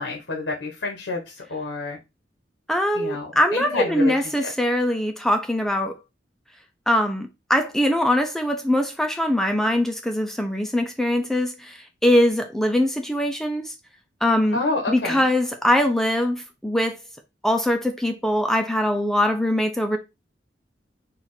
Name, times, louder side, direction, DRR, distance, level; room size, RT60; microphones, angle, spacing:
voice 1, 0.0-2.0 2.9-4.5 14.5-15.3, left 3 dB, 85° left, 1.2 m, -29 dB
voice 2, 2.7-5.9 6.9-13.7 14.2-14.6 14.9-17.0 17.4-20.0, left 1 dB, ahead, 0.5 m, -22 dB
4.3 x 2.4 x 4.0 m
head